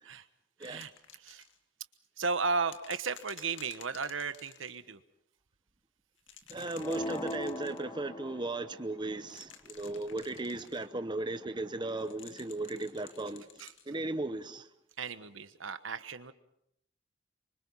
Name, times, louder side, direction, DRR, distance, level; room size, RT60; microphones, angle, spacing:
sound 1, 0.6-1.6 2.7-4.8 6.2-7.8 9.2-10.9 12.0-13.9 15.0-15.1, left 8 dB, 70° left, 2.1 m, -53 dB
voice 1, 0.6-0.9 1.2-1.4 2.2-5.0 13.6-13.7 15.0-16.3, right 4 dB, 80° right, 1.2 m, -34 dB
voice 2, 6.5-13.5 13.9-14.7, right 2 dB, 25° right, 0.8 m, -36 dB
sound 2, 6.8-8.9, left 1 dB, 20° left, 0.8 m, -39 dB
26.0 x 24.5 x 5.6 m
head